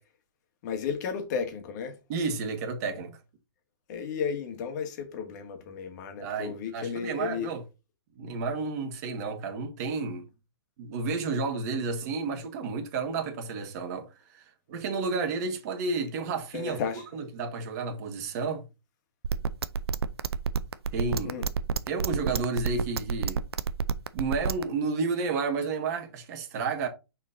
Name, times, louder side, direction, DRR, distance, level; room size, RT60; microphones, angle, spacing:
voice 1, 0.6-1.9 3.9-7.5 16.5-17.0 21.2-21.5, left 6 dB, 45° left, 2.0 m, -33 dB
voice 2, 2.1-3.1 6.2-7.6 8.2-10.3 10.8-14.1 14.3-14.4 14.7-16.8 17.1-18.6 20.9-21.3 21.9-23.4 24.1-26.9, right 4 dB, 40° right, 1.7 m, -31 dB
sound 1, 19.2-24.6, right 6 dB, 80° right, 0.6 m, -28 dB
6.3 x 4.4 x 3.8 m
hypercardioid pair, 135°, 13 cm